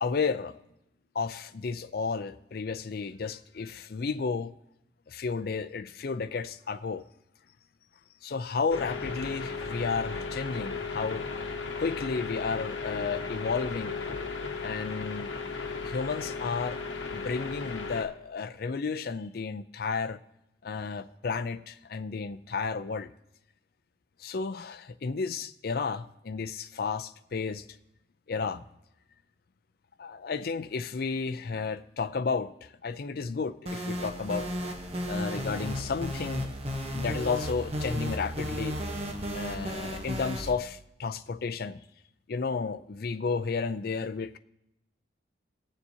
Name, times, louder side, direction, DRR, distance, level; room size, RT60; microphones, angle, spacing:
voice 1, 0.0-0.6 1.1-4.5 5.1-7.0 8.2-11.2 11.8-14.0 14.6-15.3 15.8-16.8 17.1-20.2 20.6-23.1 24.2-27.6 28.3-28.6 30.0-34.5 35.1-36.5 36.9-38.8 39.3-41.8 42.3-44.4, left 5 dB, 50° left, 0.4 m, -32 dB
sound 1, 8.7-18.0, left 4 dB, 65° left, 1.2 m, -36 dB
sound 2, 33.7-40.5, equal, 30° right, 1.0 m, -34 dB
19.5 x 7.1 x 2.8 m
head